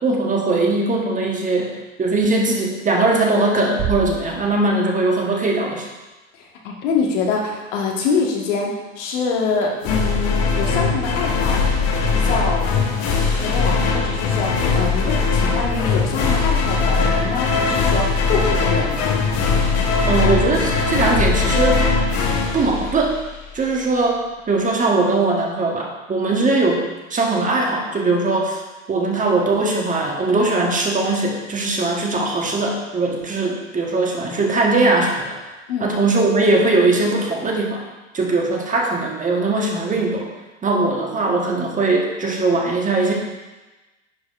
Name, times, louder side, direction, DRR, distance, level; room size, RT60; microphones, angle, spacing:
voice 1, 0.0-5.9 20.1-21.8 22.5-23.2 23.5-26.8 27.1-28.6 28.9-35.5 35.8-37.8 38.1-40.3 40.6-43.1, right 2 dB, 20° right, 0 dB, 1.2 m, -20 dB
Bass drum, 3.8-5.5, right 9 dB, 35° right, 0.8 m, -30 dB
voice 2, 6.4-11.6 12.1-12.7 13.3-19.0 35.7-35.9, left 4 dB, 60° left, 0 dB, 1.6 m, -25 dB
sound 1, 9.8-23.5, left 4 dB, 40° left, 1.2 m, -20 dB
10.5 x 4.8 x 2.5 m, 1.1 s
hypercardioid pair, 90°, 41 cm